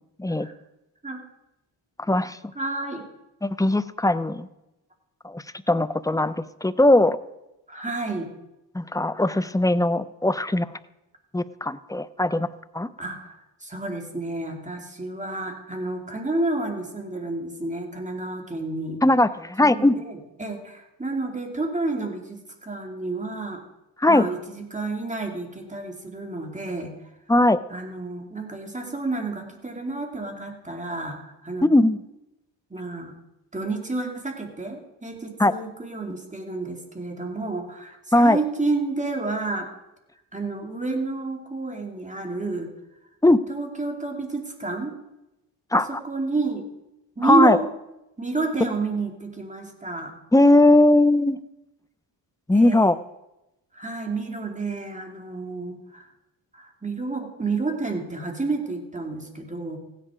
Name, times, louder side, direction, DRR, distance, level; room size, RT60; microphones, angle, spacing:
voice 1, 2.5-3.0 7.7-8.3 13.0-19.0 19.6-23.6 24.1-26.9 27.7-31.7 32.7-33.2 33.5-39.7 40.3-42.7 43.5-45.0 45.7-46.7 47.2-47.7 48.2-50.1 52.5-52.9 53.7-56.1 56.5-59.8, right 3 dB, 15° right, 3 dB, 2.7 m, -30 dB
voice 2, 3.4-4.5 5.2-6.4 6.6-7.2 8.7-10.7 11.3-12.5 12.7-12.9 19.0-19.9 24.0-24.3 27.3-27.6 31.6-32.0 35.4-35.5 38.1-38.4 43.2-43.4 45.7-46.0 47.2-47.6 50.3-51.4 52.5-53.0, left 1 dB, 10° left, 14 dB, 0.6 m, -19 dB
15.5 x 10.0 x 4.9 m, 0.92 s
cardioid pair, 70°, 45 cm